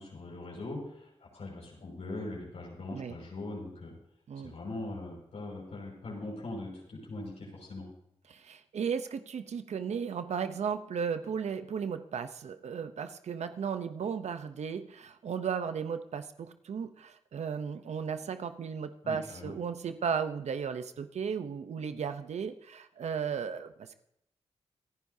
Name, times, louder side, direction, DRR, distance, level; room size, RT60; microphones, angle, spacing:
voice 1, 0.0-3.9 4.4-7.9 19.0-19.5, left 2 dB, 80° left, -3 dB, 5.7 m, -41 dB
voice 2, 8.3-24.0, right 6 dB, 85° right, 9 dB, 0.7 m, -35 dB
27.0 x 10.5 x 2.8 m, 0.78 s
cardioid pair, 65°, 11 cm